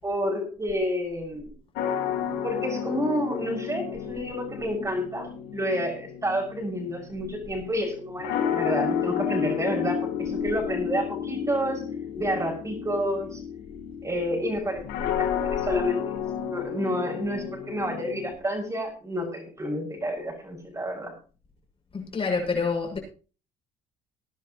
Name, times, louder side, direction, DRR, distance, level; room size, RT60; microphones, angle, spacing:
voice 1, 0.0-1.5 2.4-11.8 12.1-13.4 14.0-16.2 16.5-21.1, equal, 20° right, 0 dB, 6.5 m, -29 dB
sound 1, 1.8-18.3, left 8 dB, 85° left, 1.9 m, -31 dB
voice 2, 21.9-23.0, left 4 dB, 35° left, 1 dB, 7.4 m, -27 dB
21.0 x 10.5 x 3.2 m, 0.36 s
cardioid pair, 110°, 17 cm